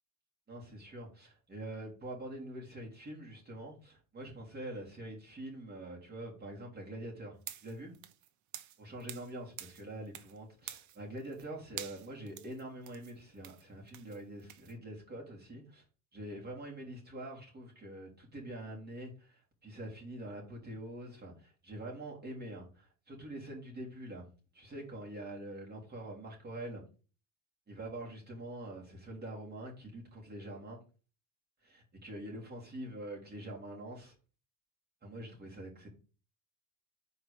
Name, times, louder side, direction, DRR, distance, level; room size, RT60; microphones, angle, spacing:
voice 1, 0.5-7.9 8.8-15.8 16.1-24.3 24.5-26.8 27.7-30.8 31.6-34.1 35.0-35.9, right 1 dB, 25° right, 3.3 m, -45 dB
sound 1, 7.4-9.3 9.6-10.4 10.6-11.5 11.8-14.7, right 11 dB, 50° right, 0.8 m, -47 dB
4.7 x 4.6 x 5.2 m
supercardioid pair, 105°, 38 cm